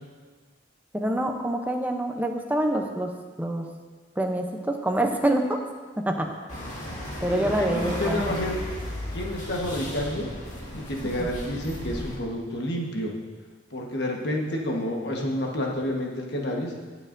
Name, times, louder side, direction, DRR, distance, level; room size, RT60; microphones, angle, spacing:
voice 1, 0.9-3.1 3.4-3.7 4.2-5.6 6.0-6.3 7.2-8.3 11.2-11.3, right 1 dB, 10° right, 3 dB, 0.7 m, -26 dB
sound 1, 6.5-12.1, left 1 dB, 45° left, 2.0 m, -35 dB
voice 2, 7.3-8.6 9.1-10.4 10.7-13.1 13.7-16.7, left 1 dB, 65° left, 0 dB, 1.4 m, -29 dB
19.5 x 6.6 x 2.7 m, 1.4 s
head